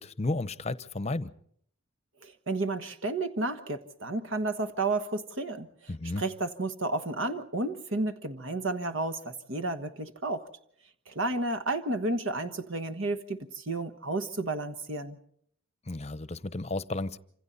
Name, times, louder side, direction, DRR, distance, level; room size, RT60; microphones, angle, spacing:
voice 1, 0.0-1.3 5.9-6.2 15.9-17.2, left 2 dB, 30° left, 15 dB, 0.8 m, -33 dB
voice 2, 2.2-5.7 6.2-10.5 11.1-15.2, right 2 dB, 65° right, 10 dB, 1.3 m, -32 dB
28.0 x 26.5 x 4.1 m, 0.65 s
head